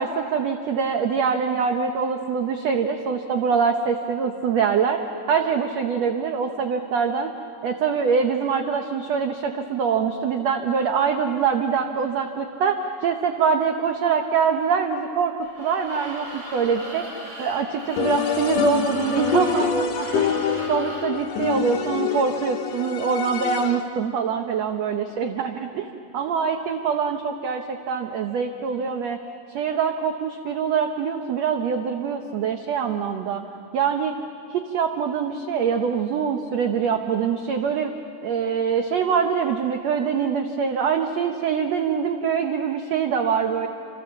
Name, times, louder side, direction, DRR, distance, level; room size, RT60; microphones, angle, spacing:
voice 1, 0.0-5.0 5.3-7.3 7.6-15.3 15.6-17.0 17.4-20.4 20.7-25.9 26.1-29.2 29.5-33.4 33.7-34.1 34.5-37.9 38.2-43.7, right 6 dB, 70° right, 5 dB, 1.6 m, -24 dB
sound 1, 15.4-21.2, equal, 45° right, 6.6 m, -38 dB
sound 2, 18.0-24.0, left 7 dB, 60° left, 2.1 m, -26 dB
28.0 x 28.0 x 7.5 m, 2.5 s
omnidirectional pair, 4.3 m